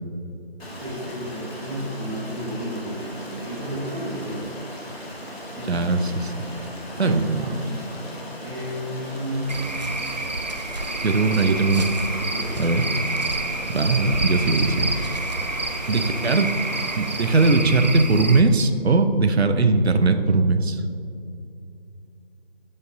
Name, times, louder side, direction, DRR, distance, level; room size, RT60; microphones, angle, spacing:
Stream, 0.6-17.5, equal, 70° left, 1.7 m, -37 dB
voice 1, 0.7-4.4 5.5-5.8 6.9-7.6 8.4-9.7 12.3-12.8 16.1-16.3, equal, ahead, -22 dB, 1.5 m, -32 dB
voice 2, 5.7-6.3 7.0-7.4 11.0-11.9 12.6-12.9 13.7-14.9 15.9-16.5 17.0-20.8, right 3 dB, 80° right, 8 dB, 0.7 m, -20 dB
Cricket / Frog, 9.5-18.4, right 2 dB, 45° right, 0.4 m, -28 dB
12.5 x 5.3 x 2.6 m, 2.6 s
figure-of-eight pair, 160°, 32 cm